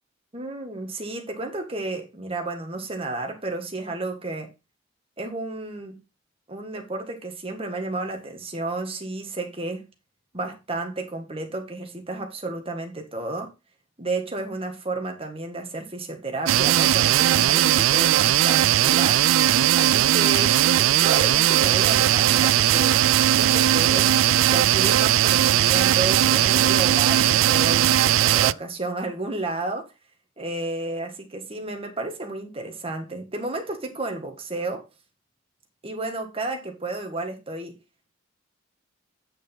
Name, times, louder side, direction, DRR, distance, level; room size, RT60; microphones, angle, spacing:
voice 1, 0.3-4.5 5.2-6.0 6.5-9.8 10.3-13.5 14.0-19.2 19.8-29.9 30.4-34.9 35.8-37.8, right 2 dB, 30° right, 1.8 m, -32 dB
sound 1, 16.5-28.5, right 12 dB, 80° right, 0.3 m, -19 dB
9.1 x 5.2 x 3.9 m
head